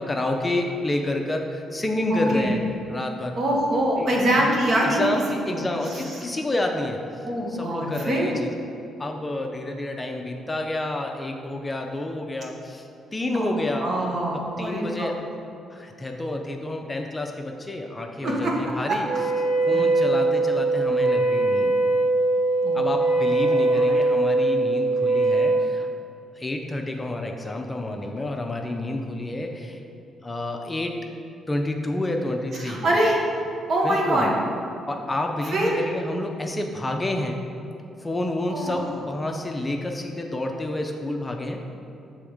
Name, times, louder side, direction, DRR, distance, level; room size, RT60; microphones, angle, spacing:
voice 1, 0.0-2.6 2.9-3.3 4.0-4.5 4.8-8.5 9.0-13.9 14.6-15.2 15.7-19.1 19.7-21.8 22.7-25.9 26.4-29.8 30.2-30.9 31.5-32.9 33.8-34.2 34.9-37.4 38.0-41.6, left 1 dB, 20° left, 3 dB, 0.5 m, -29 dB
voice 2, 2.1-2.5 3.4-5.1 5.5-5.6 5.9-6.0 7.2-8.3 13.3-13.5 13.8-15.1 18.2-18.8 19.7-19.8 22.6-22.8 23.3-24.0 32.6-33.2 33.7-34.3 35.5-35.8 38.5-38.9, right 1 dB, 55° right, -2 dB, 1.3 m, -24 dB
Wind instrument woodwind instrument, 19.0-25.7, right 2 dB, 80° right, 1.2 m, -21 dB
6.3 x 3.5 x 4.9 m, 2.8 s
cardioid pair, 90°, 0 cm